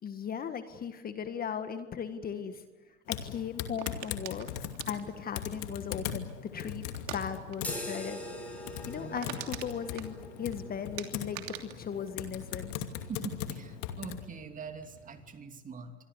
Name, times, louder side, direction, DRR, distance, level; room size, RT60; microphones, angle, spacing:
voice 1, 0.0-2.6 3.1-4.5 4.9-6.9 7.1-8.2 8.9-12.7, left 7 dB, 25° left, 9 dB, 1.7 m, -37 dB
Typing, 3.1-14.2, left 10 dB, 50° left, 2.6 m, -40 dB
sound 1, 3.8-6.3 6.9-7.2 7.5-7.8 8.0-8.1 8.5-8.6 8.9-10.6 11.0-13.0 13.3-13.7, right 14 dB, 60° right, 3.0 m, -43 dB
sound 2, 7.6-15.4, equal, 5° left, 6.6 m, -45 dB
voice 2, 9.0-9.4 13.1-16.0, right 5 dB, 20° right, 6 dB, 2.9 m, -43 dB
26.5 x 23.5 x 8.3 m, 1.2 s
hypercardioid pair, 105°, 35 cm